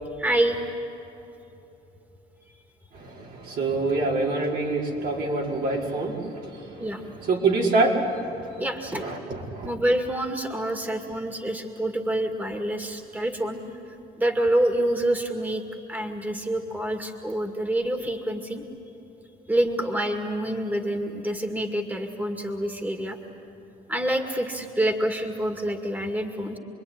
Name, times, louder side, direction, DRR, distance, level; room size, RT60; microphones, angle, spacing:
voice 1, 0.2-0.6 2.5-2.6 6.8-7.0 8.6-9.0 9.6-13.6 13.9-18.6 19.5-23.2 23.9-26.6, right 1 dB, 10° right, 4 dB, 2.2 m, -27 dB
voice 2, 2.9-6.9 7.2-8.6 9.0-9.7, right 3 dB, 70° right, -2 dB, 4.9 m, -26 dB
28.0 x 22.0 x 9.7 m, 2.9 s
cardioid pair, 110°, 17 cm